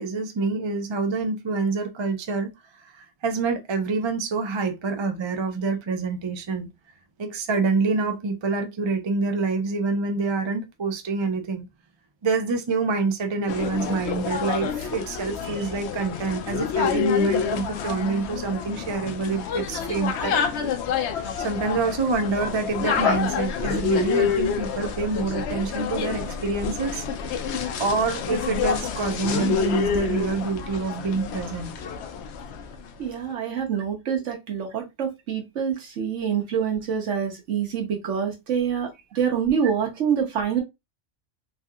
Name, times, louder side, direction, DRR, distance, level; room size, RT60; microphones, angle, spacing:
voice 1, 0.0-2.5 2.8-6.7 7.2-11.7 12.2-20.7 21.1-27.1 27.4-27.5 27.8-31.7, right 4 dB, 45° right, 0.3 m, -27 dB
sound 1, 13.5-32.8, left 7 dB, 70° left, 0.8 m, -28 dB
voice 2, 33.0-38.9 39.1-40.6, right 7 dB, 75° right, 1.3 m, -26 dB
3.3 x 2.7 x 2.3 m
omnidirectional pair, 1.3 m